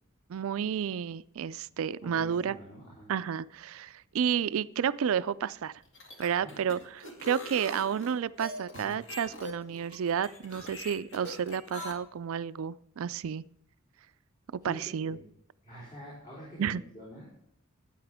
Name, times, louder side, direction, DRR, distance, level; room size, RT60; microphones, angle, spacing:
voice 1, 0.3-2.6 3.1-5.7 6.2-13.4 14.5-15.2 16.6-16.8, right 8 dB, 65° right, 17 dB, 0.4 m, -31 dB
voice 2, 2.0-3.1 6.4-6.6 11.1-11.2 14.6-15.2 15.6-17.3, equal, 35° left, -6 dB, 4.0 m, -46 dB
sound 1, 5.8-11.9, left 1 dB, 60° left, 2.3 m, -43 dB
13.0 x 9.4 x 3.5 m, 0.73 s
head